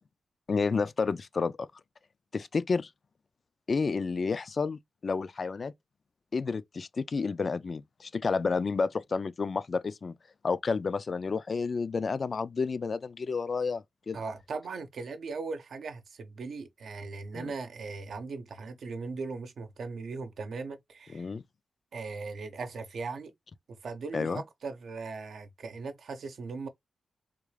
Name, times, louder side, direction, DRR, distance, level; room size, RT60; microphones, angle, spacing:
voice 1, 0.5-1.7 2.3-2.9 3.7-5.7 6.3-10.1 10.4-14.2 17.3-17.5 21.1-21.4 24.1-24.4, left 4 dB, 45° left, 0.3 m, -30 dB
voice 2, 14.1-21.3 21.9-23.3 23.7-26.7, right 4 dB, 75° right, 0.7 m, -39 dB
3.6 x 2.4 x 3.2 m
wide cardioid pair, 115°, 0 cm